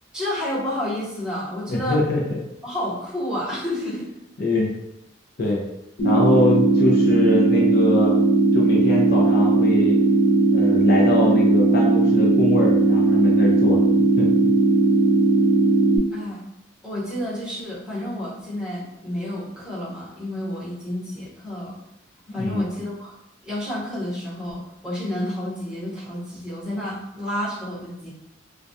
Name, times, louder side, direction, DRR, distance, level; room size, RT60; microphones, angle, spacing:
voice 1, 0.1-2.0 2.6-4.1 16.1-16.4 16.8-21.8 22.3-23.1 23.4-28.1, left 1 dB, 5° right, -10 dB, 0.8 m, -30 dB
voice 2, 1.7-2.4 4.4-4.7 5.4-5.6 6.0-8.2 8.5-10.0 10.5-13.8 14.2-14.5 22.3-22.7, left 2 dB, 55° left, -2 dB, 0.4 m, -23 dB
sound 1, 6.0-16.0, right 2 dB, 75° left, 0.8 m, -18 dB
2.2 x 2.2 x 2.6 m, 0.84 s
head